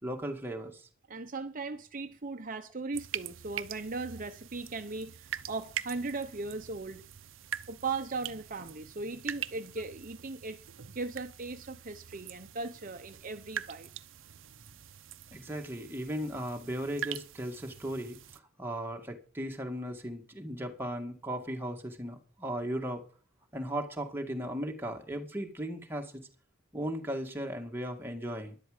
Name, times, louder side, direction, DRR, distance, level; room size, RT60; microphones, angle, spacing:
voice 1, 0.0-0.9 15.3-23.0 23.5-26.1 26.7-28.6, equal, 10° right, 1.9 m, -37 dB
voice 2, 1.1-7.0 7.7-10.6 10.9-13.9, right 3 dB, 45° right, 0.8 m, -38 dB
sound 1, 2.9-18.4, right 9 dB, 80° right, 0.7 m, -43 dB
12.5 x 11.5 x 5.0 m
head